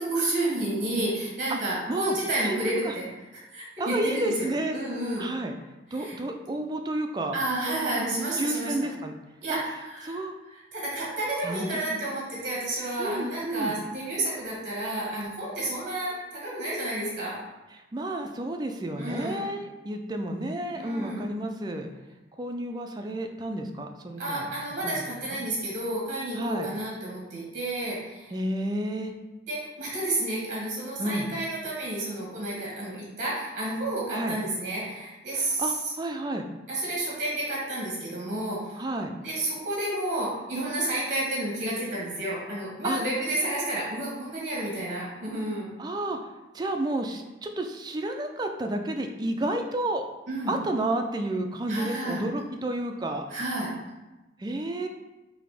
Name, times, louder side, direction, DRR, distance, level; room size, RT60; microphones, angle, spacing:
voice 1, 0.0-3.1 3.3-5.3 5.9-6.2 7.3-8.7 9.4-10.2 10.5-17.4 19.0-19.5 20.8-21.3 24.2-28.3 29.5-35.9 36.7-38.8 39.2-45.7 50.3-50.6 51.7-52.2 53.3-53.7, right 1 dB, 45° right, -5 dB, 1.4 m, -31 dB
voice 2, 3.8-4.8 5.2-5.5 5.9-7.4 7.7-9.1 9.5-9.6 10.0-10.3 11.4-11.6 11.9-12.0 13.0-13.7 17.7-21.9 22.4-24.5 24.8-24.9 25.3-25.4 26.3-26.7 28.3-29.1 31.0-31.3 34.1-34.4 35.3-36.4 38.8-39.1 42.8-43.0 45.8-46.2 46.5-50.0 50.5-53.3 54.4-54.9, right 1 dB, 25° right, 4 dB, 0.3 m, -31 dB
4.1 x 2.7 x 4.8 m, 1.1 s
head